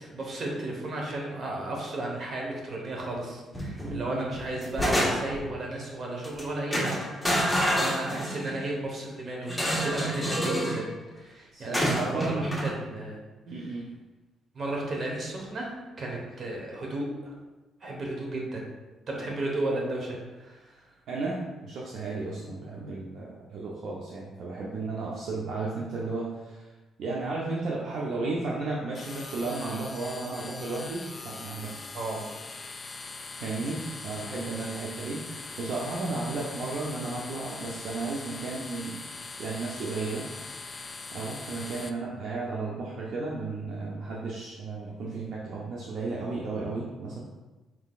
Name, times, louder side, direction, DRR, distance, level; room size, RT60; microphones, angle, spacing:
voice 1, 0.0-13.2 14.5-17.3 17.8-18.7 19.1-20.7 31.9-32.3, right 2 dB, 45° right, -2 dB, 1.2 m, -34 dB
sound 1, 3.5-4.0 4.3-5.5 6.2-6.4 6.7-8.6 9.5-10.8 11.7-12.7, equal, 5° left, 1.0 m, -28 dB
voice 2, 3.8-4.3 11.5-12.5 13.5-13.9 21.1-26.7 27.0-31.7 33.4-39.1 39.4-40.2 41.1-47.2, right 3 dB, 70° right, -4 dB, 0.6 m, -34 dB
sound 2, 28.9-41.9, left 3 dB, 35° left, 0.3 m, -41 dB
4.5 x 3.8 x 2.4 m, 1.2 s
cardioid pair, 90°, 0 cm